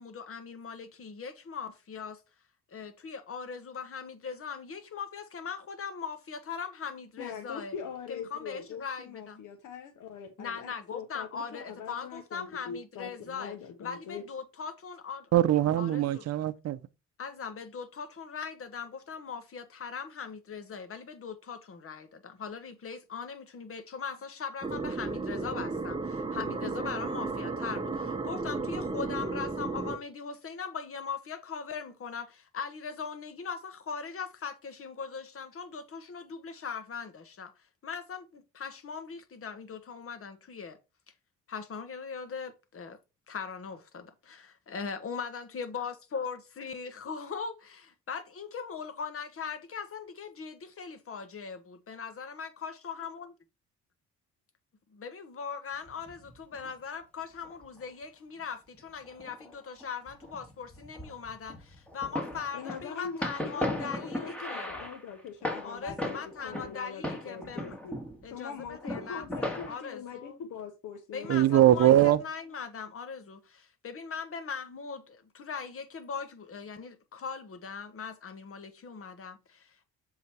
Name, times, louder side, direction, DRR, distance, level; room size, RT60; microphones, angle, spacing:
voice 1, 0.0-2.2 2.7-7.7 8.1-9.4 10.4-13.5 13.8-15.3 15.8-16.3 17.2-37.5 37.8-40.8 41.5-43.0 43.3-53.3 54.9-64.7 65.6-67.7 68.2-70.4 71.1-79.8, left 6 dB, 45° left, 1.3 m, -40 dB
voice 2, 7.2-14.2 62.5-68.0 68.3-72.0, left 6 dB, 80° left, 1.1 m, -42 dB
voice 3, 15.3-16.8 71.3-72.2, right 13 dB, 55° right, 0.6 m, -22 dB
sound 1, 24.6-30.0, right 3 dB, 20° right, 0.9 m, -34 dB
sound 2, 55.9-56.7 57.4-57.8 58.7-59.5 59.8-66.8 67.0-68.3 68.6-69.7, left 1 dB, 5° left, 1.8 m, -37 dB
7.2 x 3.9 x 4.5 m
cardioid pair, 90°, 30 cm